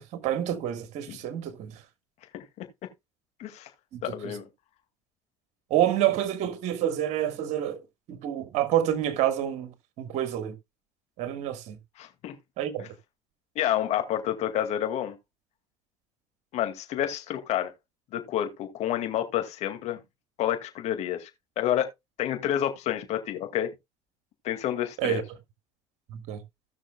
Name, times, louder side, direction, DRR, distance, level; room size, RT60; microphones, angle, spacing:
voice 1, 0.0-1.8 3.9-4.3 5.7-7.8 8.1-9.7 10.0-10.6 11.2-11.8 12.6-12.9 25.0-25.2 26.1-26.4, right 11 dB, 65° right, 1.7 m, -28 dB
voice 2, 2.3-2.7 3.4-3.7 4.0-4.4 12.0-12.3 12.8-12.9 13.6-15.2 16.5-17.7 18.1-20.0 20.4-21.3 21.6-21.9 22.2-23.7 24.4-25.2, left 11 dB, 60° left, 2.1 m, -29 dB
17.0 x 6.3 x 2.3 m
supercardioid pair, 90°, 13 cm